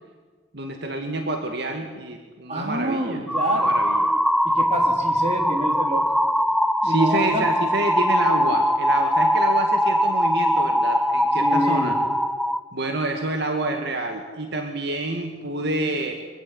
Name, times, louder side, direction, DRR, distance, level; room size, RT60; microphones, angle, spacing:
voice 1, 0.5-3.2 3.5-4.1 6.8-12.0 12.7-16.1, right 2 dB, 65° right, 4 dB, 2.1 m, -28 dB
voice 2, 2.5-3.7 4.4-6.1 6.8-7.5 11.4-12.0, right 1 dB, 35° right, 3 dB, 3.8 m, -27 dB
sound 1, 3.3-12.6, equal, ahead, 0.6 m, -21 dB
24.5 x 16.5 x 9.9 m, 1.5 s
head